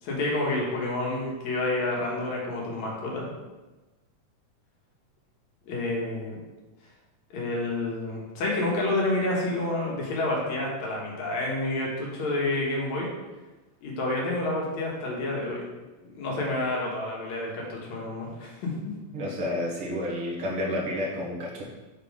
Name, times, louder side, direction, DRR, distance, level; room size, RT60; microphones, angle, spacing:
voice 1, 0.0-3.3 5.7-6.4 7.3-13.1 13.8-15.6 16.0-18.9, left 2 dB, 65° left, -3 dB, 2.7 m, -29 dB
voice 2, 19.1-21.6, left 1 dB, 50° right, -4 dB, 2.0 m, -30 dB
7.2 x 4.2 x 4.9 m, 1.2 s
omnidirectional pair, 3.6 m